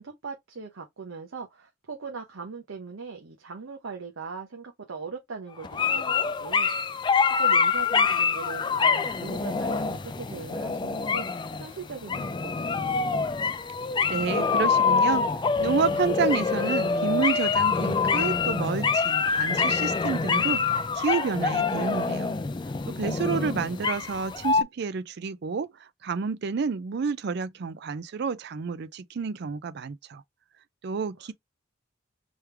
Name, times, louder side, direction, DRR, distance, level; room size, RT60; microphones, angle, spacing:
voice 1, 0.0-11.3 11.6-13.2, right 4 dB, 85° right, 0.8 m, -40 dB
sound 1, 5.6-24.6, left 5 dB, 25° left, 0.3 m, -25 dB
voice 2, 14.1-15.3 15.6-22.3 22.9-25.7 26.0-30.2 30.8-31.3, right 5 dB, 55° right, 0.4 m, -29 dB
3.5 x 3.2 x 3.2 m
head